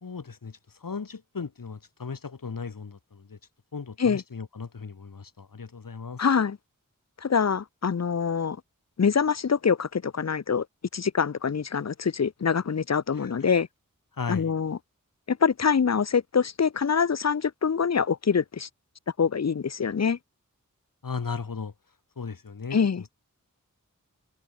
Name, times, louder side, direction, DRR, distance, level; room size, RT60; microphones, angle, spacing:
voice 1, 0.0-3.4 3.7-6.2 13.1-13.5 14.1-14.5 21.0-21.7 22.2-23.1, left 5 dB, 85° left, 1.8 m, -37 dB
voice 2, 6.2-6.6 7.2-8.6 9.0-10.6 10.9-13.7 14.3-14.8 15.3-18.7 19.2-20.2 22.7-23.0, left 6 dB, 55° left, 0.7 m, -25 dB
wide cardioid pair, 55°, 33 cm